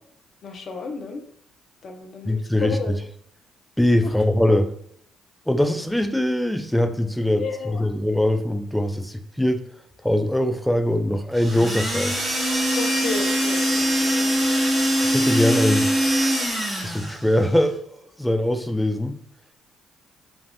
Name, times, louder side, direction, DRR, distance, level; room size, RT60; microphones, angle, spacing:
voice 1, 0.4-1.2 1.8-2.9 4.0-4.1 4.5-4.6 7.4-7.8 12.8-14.3, left 4 dB, 60° left, 4 dB, 0.6 m, -32 dB
voice 2, 2.2-3.0 3.8-4.7 5.5-9.6 10.0-12.2 15.0-15.9 16.8-17.8 18.2-19.1, left 1 dB, 5° left, 7 dB, 0.3 m, -22 dB
sound 1, 11.3-17.2, equal, 15° right, 0.8 m, -22 dB
3.3 x 2.4 x 2.2 m, 0.67 s
supercardioid pair, 70°, 0 cm